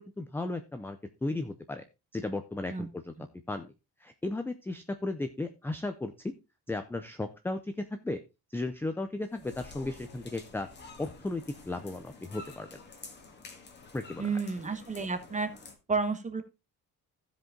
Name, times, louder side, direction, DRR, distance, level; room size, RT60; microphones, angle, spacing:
voice 1, 0.0-1.8 2.1-3.1 3.5-3.7 4.0-6.3 6.7-7.7 8.0-8.2 8.5-10.7 11.0-12.8 13.9-14.2, left 2 dB, 5° left, 8 dB, 0.4 m, -35 dB
sound 1, 9.2-15.7, left 3 dB, 30° left, 1.6 m, -50 dB
voice 2, 14.2-15.5 15.9-16.4, right 4 dB, 20° right, 8 dB, 1.2 m, -31 dB
15.0 x 5.2 x 3.7 m, 0.26 s
cardioid pair, 175°, 37 cm